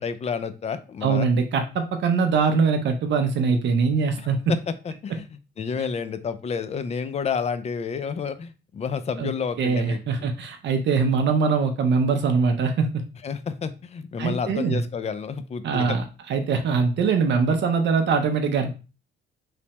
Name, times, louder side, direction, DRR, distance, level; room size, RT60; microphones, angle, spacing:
voice 1, 0.0-1.3 4.2-10.0 13.2-16.0, left 6 dB, 35° left, 12 dB, 0.4 m, -30 dB
voice 2, 1.0-4.4 9.2-9.3 9.6-13.0 14.2-14.8 15.6-16.0 16.3-18.7, right 5 dB, 65° right, 6 dB, 0.5 m, -22 dB
3.2 x 2.0 x 2.8 m, 0.32 s
cardioid pair, 90°, 20 cm